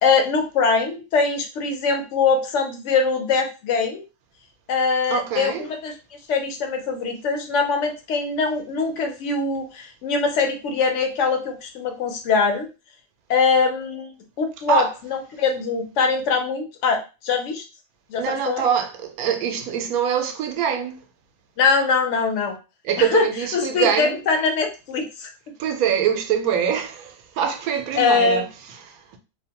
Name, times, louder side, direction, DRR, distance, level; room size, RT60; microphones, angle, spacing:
voice 1, 0.0-4.0 4.7-5.9 6.3-12.7 13.3-17.6 18.1-18.6 21.6-22.6 23.0-23.3 23.5-25.3 28.0-28.4, left 4 dB, 65° left, 0.9 m, -22 dB
voice 2, 5.1-5.7 14.7-14.9 18.2-21.0 22.8-24.2 25.6-28.5 28.7-29.2, right 8 dB, 90° right, 1.0 m, -24 dB
2.6 x 2.1 x 2.8 m
omnidirectional pair, 1.5 m